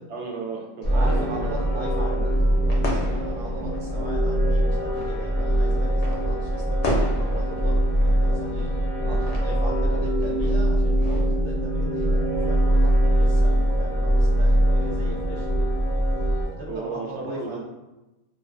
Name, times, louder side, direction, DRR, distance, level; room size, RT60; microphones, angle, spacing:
voice 1, 0.1-1.5 2.0-2.2 16.7-17.6, right 3 dB, 85° right, 0 dB, 0.9 m, -33 dB
sound 1, 0.8-11.2, left 1 dB, 80° left, 0.9 m, -37 dB
sound 2, 0.8-16.5, equal, 55° right, 0.8 m, -22 dB
voice 2, 0.9-15.7 16.5-17.6, right 1 dB, 35° right, -4 dB, 0.4 m, -38 dB
2.4 x 2.2 x 2.4 m, 1.0 s
omnidirectional pair, 1.1 m